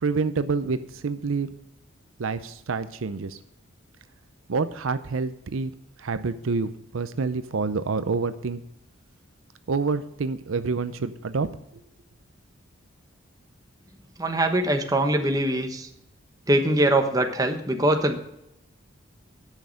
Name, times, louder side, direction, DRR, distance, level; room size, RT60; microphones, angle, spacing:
voice 1, 0.0-1.5 2.2-3.4 4.5-5.7 6.0-8.6 9.7-11.5, right 4 dB, 75° right, 12 dB, 0.6 m, -27 dB
voice 2, 14.2-15.9 16.5-18.2, right 1 dB, 15° right, 5 dB, 1.1 m, -22 dB
10.5 x 6.4 x 6.3 m, 0.82 s
head